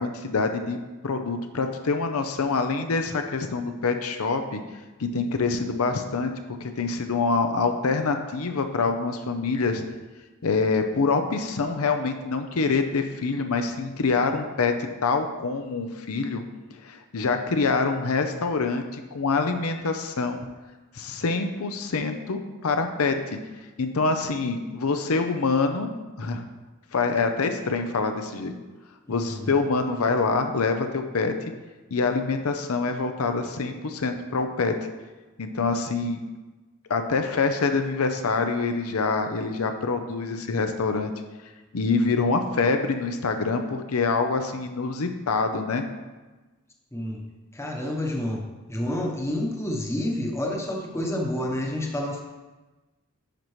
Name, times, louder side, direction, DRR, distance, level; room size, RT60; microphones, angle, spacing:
voice 1, 0.0-4.6 5.0-9.8 10.4-16.4 16.8-20.5 20.9-23.4 23.8-25.9 26.2-26.4 26.9-28.5 29.1-31.3 31.9-34.7 35.4-36.2 36.9-41.1 41.7-45.8, left 4 dB, 80° left, 6 dB, 0.7 m, -25 dB
voice 2, 29.1-29.5 46.9-47.2 47.5-48.4 48.7-52.2, left 1 dB, 15° left, 0 dB, 1.0 m, -29 dB
10.0 x 5.7 x 3.1 m, 1.2 s
head